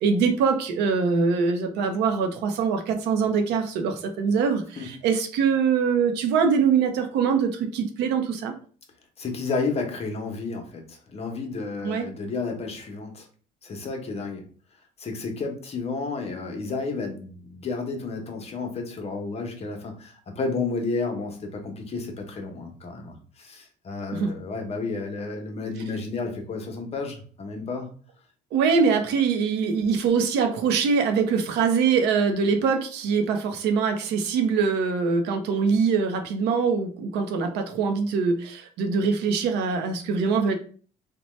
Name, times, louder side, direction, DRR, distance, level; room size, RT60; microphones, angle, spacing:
voice 1, 0.0-8.5 11.8-12.1 24.2-24.3 28.5-40.6, right 5 dB, 85° right, 6 dB, 0.6 m, -23 dB
voice 2, 9.2-13.3 13.6-14.4 15.0-27.9, left 4 dB, 40° left, 4 dB, 0.7 m, -31 dB
2.8 x 2.1 x 3.1 m, 0.42 s
cardioid pair, 110°, 17 cm